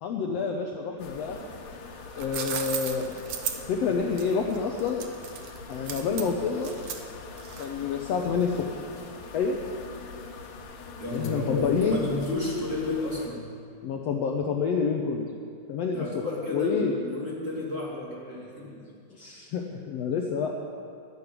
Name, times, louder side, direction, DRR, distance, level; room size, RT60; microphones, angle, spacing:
voice 1, 0.0-1.4 2.2-3.1 3.7-5.1 5.7-6.8 7.6-8.8 9.3-9.6 11.1-12.1 13.8-15.2 15.7-16.2 16.5-16.9 19.1-20.5, left 5 dB, 85° left, 1 dB, 1.4 m, -28 dB
sound 1, 1.0-13.3, left 4 dB, 65° left, 2.6 m, -43 dB
sound 2, 1.9-7.9, right 8 dB, 75° right, 1.4 m, -36 dB
voice 2, 11.0-13.5 15.9-19.0, left 2 dB, 25° right, -5 dB, 2.5 m, -32 dB
11.5 x 11.0 x 8.4 m, 2.4 s
omnidirectional pair, 4.1 m